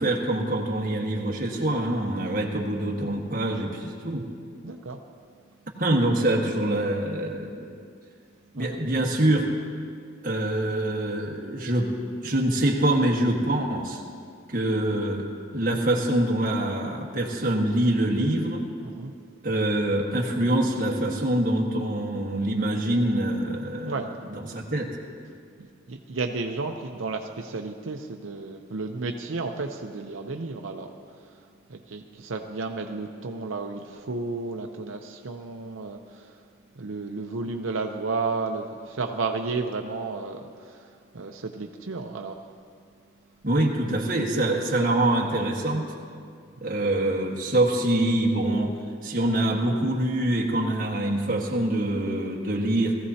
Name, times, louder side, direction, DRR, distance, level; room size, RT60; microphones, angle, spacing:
voice 1, 0.0-4.2 5.8-7.7 8.5-9.5 10.2-11.9 12.2-14.0 14.5-15.3 15.5-18.6 19.4-23.9 24.3-24.9 43.4-45.9 46.6-48.7 49.0-53.0, right 1 dB, 45° right, -1 dB, 1.5 m, -25 dB
voice 2, 4.6-5.0 8.6-8.7 18.8-19.1 23.8-24.1 25.6-36.4 36.7-42.4 44.4-44.5 46.6-46.9, right 3 dB, 80° right, 3 dB, 0.7 m, -33 dB
19.5 x 15.0 x 2.8 m, 2.2 s
head